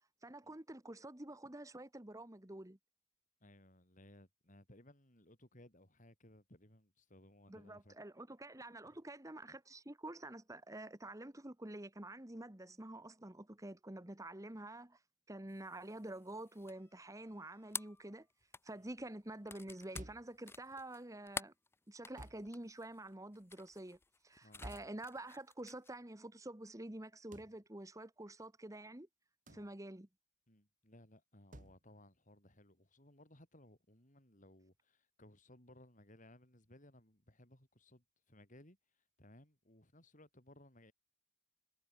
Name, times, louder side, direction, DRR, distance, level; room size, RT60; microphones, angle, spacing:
voice 1, 0.2-2.8 7.5-15.0 15.3-18.3 18.6-21.5 21.9-24.0 24.2-29.1 29.5-30.1, right 1 dB, 15° right, 1.4 m, -48 dB
voice 2, 3.4-8.0 8.8-9.0 18.7-18.9 24.4-24.7 29.5-29.7 30.5-40.9, left 1 dB, 40° left, 6.6 m, -62 dB
sound 1, 15.5-25.9, left 4 dB, 10° left, 0.8 m, -50 dB
sound 2, 19.9-20.4 22.2-22.5 24.6-25.0 27.3-27.6 29.5-29.7 31.5-31.8, right 1 dB, 40° right, 3.7 m, -51 dB
head